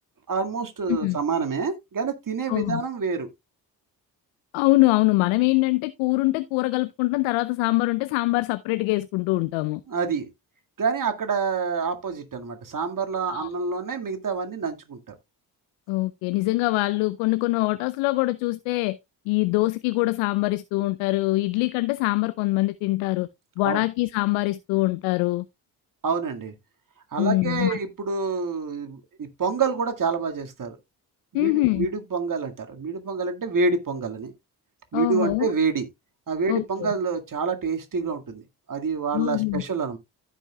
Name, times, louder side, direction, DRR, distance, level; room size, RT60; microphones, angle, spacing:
voice 1, 0.3-3.3 9.9-10.3 10.8-15.1 23.6-23.8 26.0-26.5 27.1-30.8 31.3-34.3 34.9-35.9 36.3-38.4 38.7-40.0, right 5 dB, 40° right, 2.0 m, -27 dB
voice 2, 2.5-2.8 4.5-9.8 13.3-13.5 15.9-19.0 19.3-23.3 23.6-25.4 27.2-27.8 31.3-31.9 34.9-35.5 36.5-36.9 39.1-39.6, left 21 dB, 75° left, 0.7 m, -23 dB
15.0 x 5.9 x 2.3 m
hypercardioid pair, 45°, 48 cm